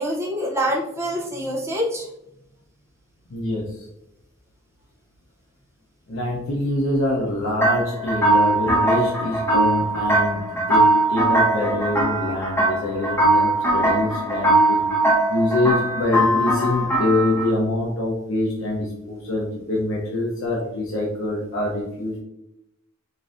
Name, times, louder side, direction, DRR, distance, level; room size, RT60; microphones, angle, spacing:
voice 1, 0.0-2.1, equal, 15° right, -2 dB, 0.6 m, -25 dB
voice 2, 3.3-3.9 6.1-14.9 15.3-22.2, left 1 dB, 70° left, -3 dB, 0.7 m, -25 dB
sound 1, 7.6-17.5, right 2 dB, 10° left, 0.9 m, -20 dB
5.2 x 2.6 x 2.5 m, 0.82 s
head